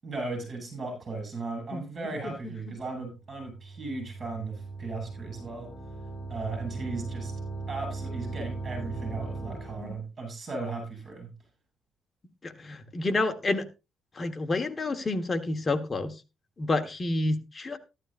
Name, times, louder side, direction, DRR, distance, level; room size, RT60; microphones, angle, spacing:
voice 1, 0.0-5.7 6.3-7.3 7.7-11.3, right 3 dB, 40° right, 4 dB, 7.4 m, -36 dB
voice 2, 1.7-2.5 9.5-10.0 12.4-13.7 14.1-16.1 16.6-17.8, left 2 dB, 25° left, 6 dB, 1.4 m, -30 dB
sound 1, 3.2-10.0, right 3 dB, 45° left, 4.4 m, -38 dB
14.0 x 12.0 x 2.6 m, 0.27 s
cardioid pair, 110°, 0 cm